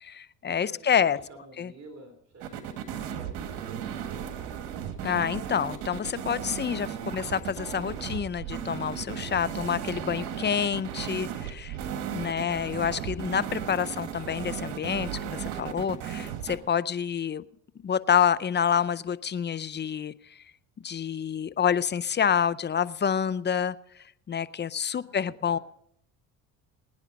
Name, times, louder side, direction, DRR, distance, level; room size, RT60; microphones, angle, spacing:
voice 1, 0.0-1.2 1.6-1.7 5.0-11.8 12.1-17.4 17.8-20.1 20.8-23.8 24.3-25.6, left 8 dB, 25° left, 17 dB, 0.6 m, -28 dB
voice 2, 0.6-4.8 11.7-12.0 24.9-25.6, right 1 dB, 40° right, 4 dB, 3.1 m, -51 dB
sound 1, 2.4-16.6, right 9 dB, 75° right, 2.0 m, -35 dB
23.5 x 9.7 x 4.1 m, 0.68 s
supercardioid pair, 75°, 41 cm